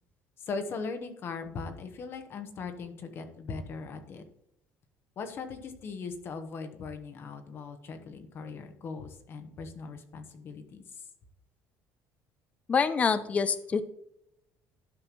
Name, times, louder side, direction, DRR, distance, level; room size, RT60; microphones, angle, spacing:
voice 1, 0.5-4.2 5.2-10.8, left 4 dB, 40° left, 7 dB, 1.1 m, -39 dB
voice 2, 12.7-13.8, left 5 dB, 25° left, 12 dB, 0.4 m, -26 dB
11.5 x 5.6 x 3.1 m, 0.78 s
cardioid pair, 145°, 6 cm